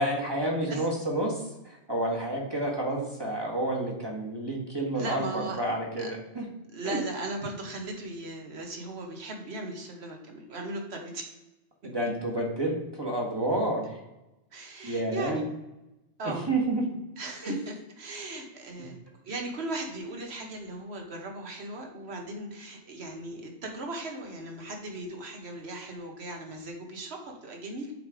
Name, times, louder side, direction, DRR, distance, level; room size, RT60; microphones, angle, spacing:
voice 1, 0.0-6.5 6.8-7.0 11.8-14.0 14.8-15.4 16.2-16.8 17.4-17.5 18.8-18.9, right 1 dB, 20° right, -2 dB, 1.4 m, -30 dB
voice 2, 4.9-5.6 6.0-6.1 6.7-11.3 14.5-15.5 16.2-16.4 17.2-19.0 19.2-27.9, right 2 dB, 65° right, 2 dB, 1.4 m, -37 dB
7.8 x 3.3 x 4.9 m, 0.95 s
omnidirectional pair, 1.2 m